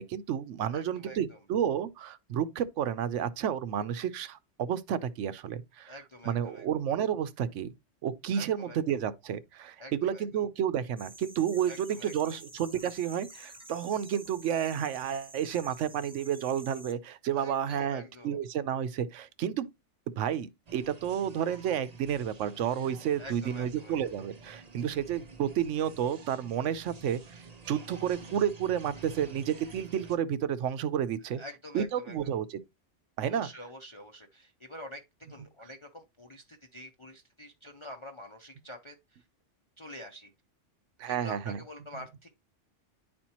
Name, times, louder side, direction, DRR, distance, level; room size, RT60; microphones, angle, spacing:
voice 1, 0.0-5.9 6.3-7.7 8.0-19.7 20.2-31.4 31.7-32.6 33.2-33.5 41.0-41.6, right 9 dB, 80° right, 1.0 m, -31 dB
voice 2, 0.6-1.4 5.9-6.7 8.3-8.8 9.8-10.4 11.7-12.4 17.3-18.4 23.2-24.0 31.3-32.3 33.2-35.0 35.3-39.2 39.8-40.3 41.1-42.3, equal, 30° left, 0.7 m, -46 dB
sound 1, 11.0-16.9, right 1 dB, 5° right, 0.9 m, -50 dB
sound 2, 20.7-30.2, right 4 dB, 40° right, 0.7 m, -50 dB
10.5 x 4.4 x 2.9 m
omnidirectional pair, 1.3 m